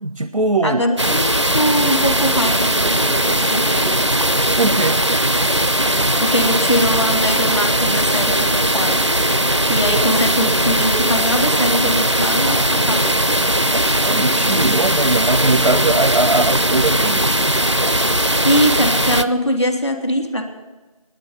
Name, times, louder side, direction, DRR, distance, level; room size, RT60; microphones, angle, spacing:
voice 1, 0.0-0.8 4.6-5.0 14.0-17.3, right 2 dB, 85° right, 11 dB, 0.7 m, -20 dB
voice 2, 0.6-4.0 6.2-9.1 9.7-13.1 18.4-20.4, equal, 45° left, 5 dB, 1.3 m, -21 dB
sound 1, 1.0-19.2, right 1 dB, 50° right, 0.4 m, -18 dB
10.0 x 8.6 x 7.8 m, 1.2 s
figure-of-eight pair, 180°, 19 cm